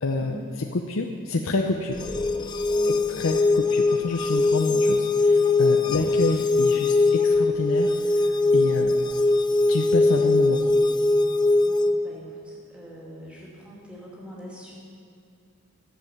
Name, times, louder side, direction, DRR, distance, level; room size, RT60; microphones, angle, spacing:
voice 1, 0.0-2.0 3.1-9.0 9.7-10.6, left 3 dB, 75° left, 2 dB, 0.7 m, -28 dB
sound 1, 1.9-11.9, left 3 dB, 20° left, 0.5 m, -21 dB
voice 2, 2.7-3.2 5.8-6.1 6.5-6.6 11.6-14.7, right 1 dB, 5° right, -6 dB, 2.7 m, -43 dB
13.5 x 7.6 x 7.1 m, 2.3 s
head